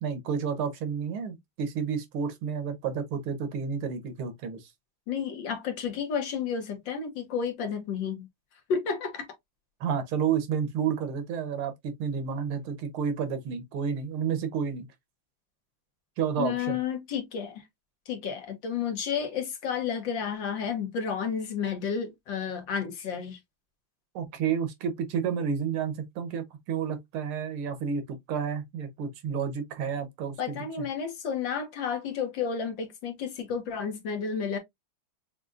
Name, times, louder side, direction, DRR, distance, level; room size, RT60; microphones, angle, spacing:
voice 1, 0.0-4.7 9.8-14.9 16.2-16.8 24.2-30.9, right 7 dB, 85° right, 1.8 m, -31 dB
voice 2, 5.1-8.3 8.7-9.3 16.4-17.6 18.1-23.4 30.4-34.6, left 7 dB, 65° left, 1.6 m, -31 dB
6.4 x 2.5 x 2.4 m
omnidirectional pair, 2.3 m